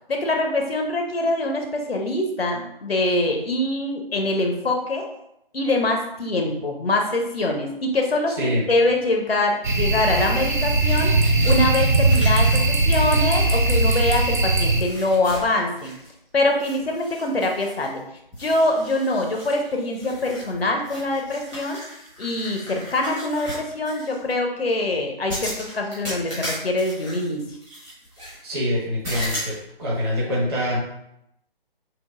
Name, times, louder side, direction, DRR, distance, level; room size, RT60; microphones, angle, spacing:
voice 1, 0.1-5.1 5.5-11.1 11.4-15.9 16.3-18.0 18.4-21.8 22.2-27.4, left 2 dB, 85° left, 2 dB, 0.8 m, -24 dB
sound 1, 9.6-14.8, right 2 dB, 55° right, 0.6 m, -19 dB
sound 2, 10.4-14.5 14.8-16.2 16.5-18.0 18.3-24.3 25.3-28.4 29.0-29.6, equal, 5° right, 0.9 m, -37 dB
voice 2, 28.4-30.8, left 1 dB, 25° right, -6 dB, 1.2 m, -25 dB
5.8 x 2.0 x 2.5 m, 0.80 s
figure-of-eight pair, 150°, 29 cm